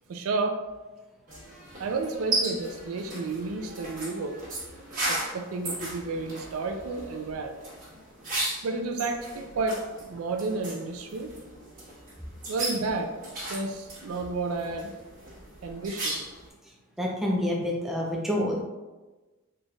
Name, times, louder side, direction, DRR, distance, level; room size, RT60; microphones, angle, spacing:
voice 1, 0.1-0.6 1.8-4.4 5.1-7.5 8.6-11.3 12.5-13.1 13.4-14.9 15.6-16.2, right 3 dB, 70° right, 4 dB, 0.4 m, -31 dB
sound 1, 1.3-16.5, right 2 dB, 40° right, 1.4 m, -36 dB
voice 2, 17.0-18.6, left 1 dB, ahead, -3 dB, 0.5 m, -27 dB
4.0 x 3.2 x 2.4 m, 1.2 s
head